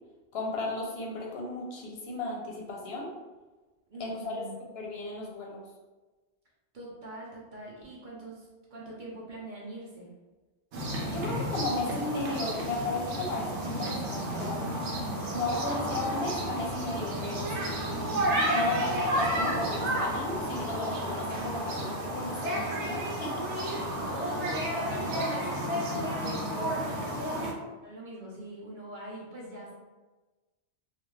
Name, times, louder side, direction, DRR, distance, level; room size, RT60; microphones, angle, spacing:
voice 1, 0.3-3.1 4.0-4.4 4.7-5.6 11.1-14.6 15.3-17.9 18.5-23.4, left 2 dB, 70° left, -1 dB, 0.8 m, -34 dB
voice 2, 3.9-4.5 6.7-10.1 23.9-27.5 27.8-29.7, right 1 dB, 50° right, -5 dB, 0.7 m, -43 dB
sound 1, 10.7-27.5, right 1 dB, 80° right, 0.9 m, -31 dB
2.4 x 2.3 x 3.1 m, 1.2 s
omnidirectional pair, 1.2 m